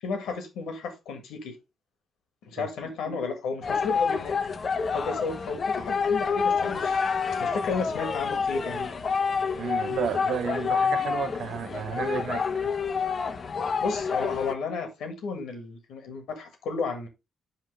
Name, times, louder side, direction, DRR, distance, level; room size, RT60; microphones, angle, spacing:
voice 1, 0.0-1.5 2.5-4.3 4.9-7.0 7.4-8.9 13.8-17.1, left 4 dB, 75° left, 1.7 m, -33 dB
sound 1, 3.6-14.5, left 5 dB, 50° left, 0.8 m, -28 dB
voice 2, 9.6-12.7, right 9 dB, 70° right, 0.6 m, -32 dB
5.8 x 5.1 x 3.3 m
hypercardioid pair, 40°, 0 cm